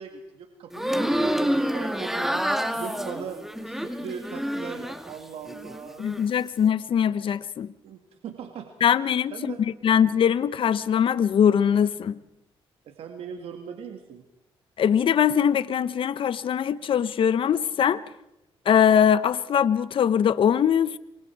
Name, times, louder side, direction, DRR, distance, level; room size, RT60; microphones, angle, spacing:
voice 1, 0.0-6.1 7.8-8.7 9.3-9.6 12.9-14.2, right 7 dB, 80° right, 2.2 m, -40 dB
sound 1, 0.7-5.1 5.5-6.2, equal, 5° right, 2.1 m, -28 dB
voice 2, 6.0-7.7 8.8-12.2 14.8-18.0 18.7-21.0, left 8 dB, 60° left, 0.8 m, -22 dB
27.0 x 23.5 x 4.7 m
cardioid pair, 85°, 10 cm